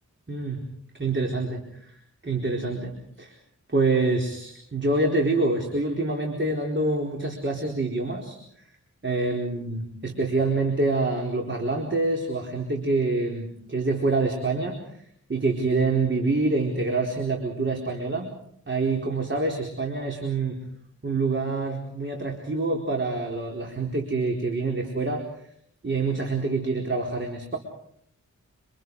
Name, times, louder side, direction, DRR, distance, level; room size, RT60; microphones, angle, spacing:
voice 1, 0.3-0.6 1.0-2.0 2.2-3.3 3.7-8.4 9.0-14.8 15.3-18.3 18.7-20.6 21.0-25.2 25.8-27.6, right 3 dB, 40° right, 1 dB, 4.4 m, -26 dB
27.5 x 27.0 x 4.9 m, 0.69 s
wide cardioid pair, 75°, 31 cm